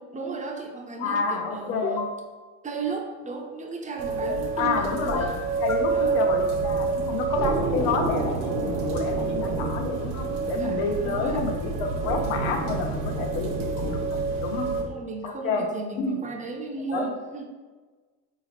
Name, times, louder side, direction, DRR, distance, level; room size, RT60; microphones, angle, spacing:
voice 1, 0.0-2.1 2.6-5.3 5.9-6.2 7.8-8.0 10.5-11.4 14.5-17.4, right 4 dB, 20° right, 3 dB, 0.4 m, -35 dB
voice 2, 1.0-1.9 4.6-5.3 5.6-14.7 15.2-15.7 15.9-16.2 16.9-17.1, left 4 dB, 85° left, 3 dB, 0.7 m, -29 dB
sound 1, 1.8-2.2 4.2-4.8 5.1-5.9, left 5 dB, 40° left, 0.6 m, -31 dB
sound 2, 4.0-14.8, right 4 dB, 75° right, 0.9 m, -28 dB
3.7 x 2.8 x 2.9 m, 1.3 s
supercardioid pair, 95°, 42 cm